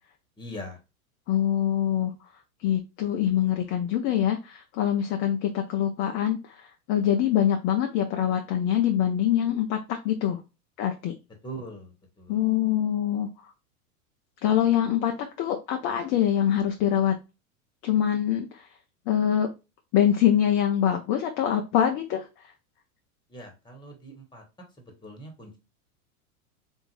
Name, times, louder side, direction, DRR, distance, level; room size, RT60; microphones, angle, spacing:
voice 1, 0.4-0.8 11.4-12.4 23.3-24.4 24.8-25.6, right 1 dB, 10° left, 2 dB, 1.1 m, -41 dB
voice 2, 1.3-2.1 2.6-10.4 10.8-11.1 12.3-13.3 14.4-17.2 17.8-18.6 19.1-19.5 19.9-22.3, left 10 dB, 30° left, 4 dB, 0.4 m, -24 dB
3.5 x 2.6 x 3.0 m, 0.27 s
hypercardioid pair, 95°, 44 cm